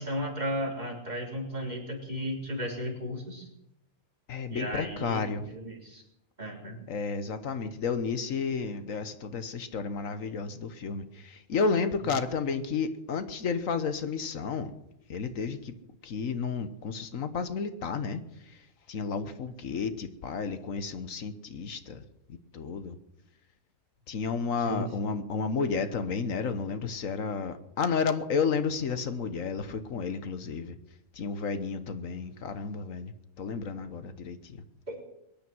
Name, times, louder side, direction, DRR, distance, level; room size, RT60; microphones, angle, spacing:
voice 1, 0.0-3.5 4.5-6.0 6.4-6.8 24.7-25.2 34.9-35.0, equal, 30° right, -2 dB, 4.1 m, -35 dB
voice 2, 4.3-5.5 6.9-14.7 15.1-15.7 16.0-22.0 22.5-23.0 24.1-30.8 31.1-34.6, left 5 dB, 80° left, 10 dB, 1.5 m, -32 dB
22.5 x 10.5 x 6.2 m, 0.84 s
omnidirectional pair, 1.4 m